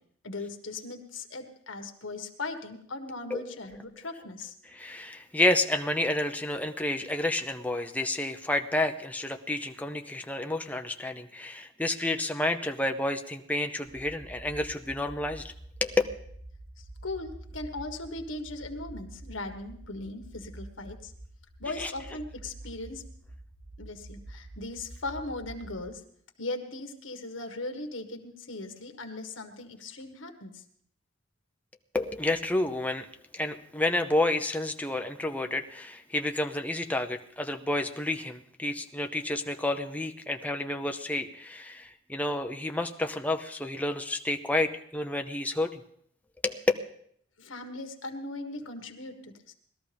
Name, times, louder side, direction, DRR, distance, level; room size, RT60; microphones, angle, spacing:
voice 1, 0.2-4.5 16.8-21.1 21.6-23.0 23.8-26.0 26.4-30.6 47.4-49.5, left 2 dB, 80° left, 5 dB, 1.6 m, -38 dB
voice 2, 4.8-15.5 15.8-16.0 21.8-21.9 31.9-33.1 33.3-45.8 46.4-46.6, left 1 dB, 10° left, 5 dB, 0.7 m, -30 dB
sound 1, 13.9-25.8, right 1 dB, 70° right, 5.3 m, -47 dB
19.5 x 13.0 x 3.5 m, 0.65 s
head